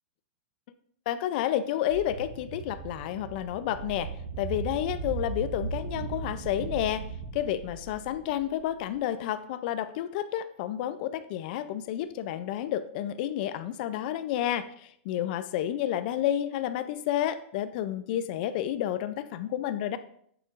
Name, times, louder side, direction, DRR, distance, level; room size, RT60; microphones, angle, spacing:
voice 1, 1.1-4.1 4.4-7.0 7.3-20.0, left 11 dB, 45° left, 12 dB, 0.3 m, -30 dB
sound 1, 1.9-9.0, right 4 dB, 70° right, 0.7 m, -38 dB
7.0 x 5.8 x 2.4 m, 0.65 s
supercardioid pair, 155°, 7 cm